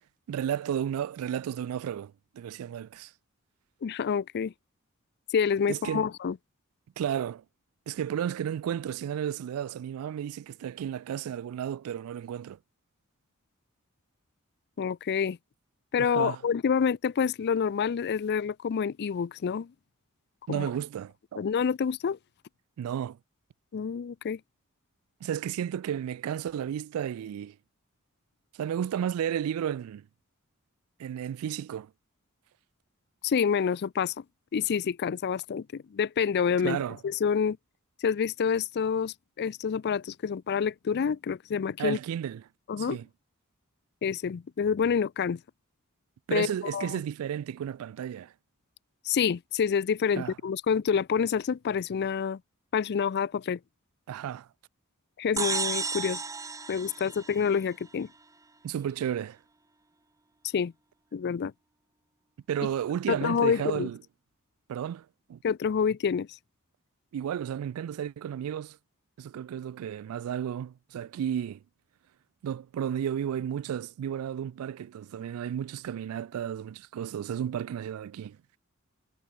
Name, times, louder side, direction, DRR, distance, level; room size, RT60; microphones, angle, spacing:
voice 1, 0.3-3.1 5.7-6.1 7.0-7.4 7.9-12.6 16.0-16.4 20.5-21.4 22.8-23.2 25.2-27.6 28.6-30.0 31.0-31.9 36.6-37.0 41.8-42.4 42.8-43.1 46.3-48.3 50.2-50.3 54.1-54.5 58.6-59.4 62.5-64.0 64.7-65.4 67.1-68.8 69.2-71.6 72.4-78.4, right 9 dB, 80° right, 0.3 m, -33 dB
voice 2, 3.8-4.5 5.3-6.4 14.8-15.4 15.9-19.7 20.5-20.7 21.4-22.2 23.7-24.4 33.2-34.2 34.5-37.6 38.0-42.0 42.7-43.0 44.0-45.4 46.3-47.0 49.1-52.4 52.7-53.6 55.2-56.2 56.7-58.1 60.5-60.7 61.1-61.5 63.1-63.9 65.4-66.3, left 6 dB, 50° left, 0.4 m, -28 dB
sound 1, 55.4-58.0, right 4 dB, 15° right, 1.0 m, -33 dB
head